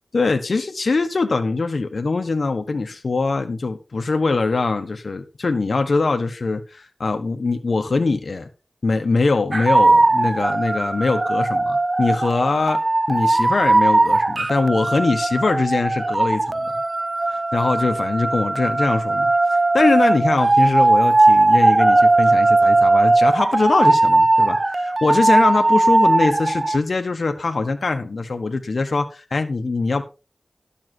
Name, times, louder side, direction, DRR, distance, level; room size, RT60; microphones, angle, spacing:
voice 1, 0.1-8.5 8.8-12.8 13.1-16.8 17.3-30.0, left 3 dB, 75° left, 6 dB, 1.4 m, -22 dB
sound 1, 9.5-26.8, right 2 dB, 45° right, 0.5 m, -18 dB
12.5 x 7.3 x 4.5 m, 0.30 s
cardioid pair, 45°, 0 cm